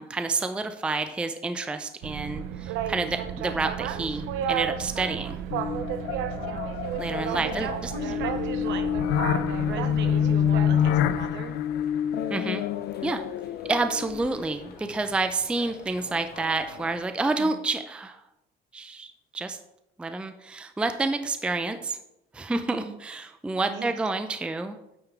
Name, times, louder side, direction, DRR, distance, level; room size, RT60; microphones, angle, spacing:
voice 1, 0.0-5.4 7.0-8.1 12.3-12.6 13.0-13.2 13.7-18.2 18.7-19.6 20.0-22.0 22.3-24.8, right 3 dB, 5° right, 8 dB, 0.4 m, -29 dB
Boat Water vehicle, 2.0-11.3, right 9 dB, 80° right, 0.5 m, -33 dB
sound 1, 5.5-14.6, left 9 dB, 75° left, 0.4 m, -27 dB
voice 2, 6.4-6.8 7.3-8.9 9.6-11.6 17.4-17.6 22.7-23.0 23.7-24.0, right 7 dB, 60° right, 7 dB, 1.0 m, -38 dB
sound 2, 6.8-17.0, left 4 dB, 50° left, 1.1 m, -49 dB
8.9 x 3.7 x 4.5 m, 0.86 s
cardioid pair, 115°, 21 cm